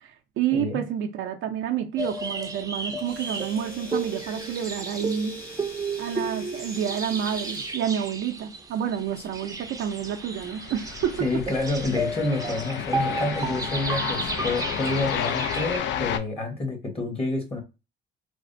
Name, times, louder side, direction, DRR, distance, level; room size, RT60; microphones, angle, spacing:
voice 1, 0.0-5.3 6.0-11.2, right 9 dB, 80° right, 0.5 m, -29 dB
voice 2, 0.5-0.8 11.2-17.6, left 2 dB, 30° left, 1.0 m, -28 dB
sound 1, 2.0-15.8, right 3 dB, 15° right, 0.5 m, -33 dB
Domestic sounds home sounds, 3.0-7.8, left 2 dB, 45° left, 1.3 m, -45 dB
sound 2, 9.5-16.2, left 9 dB, 65° left, 0.4 m, -32 dB
3.3 x 2.0 x 2.5 m
cardioid pair, 90°, 20 cm